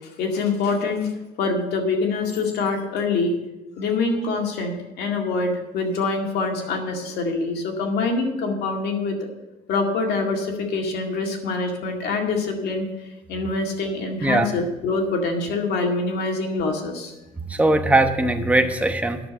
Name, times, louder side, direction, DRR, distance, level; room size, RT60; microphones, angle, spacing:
voice 1, 0.2-1.1 1.4-3.3 3.8-9.3 9.7-12.8 13.3-17.1, left 3 dB, 75° left, 2 dB, 2.1 m, -25 dB
voice 2, 17.5-19.3, right 2 dB, 10° right, 6 dB, 1.0 m, -20 dB
10.0 x 6.6 x 6.5 m, 1.0 s
cardioid pair, 110°, 17 cm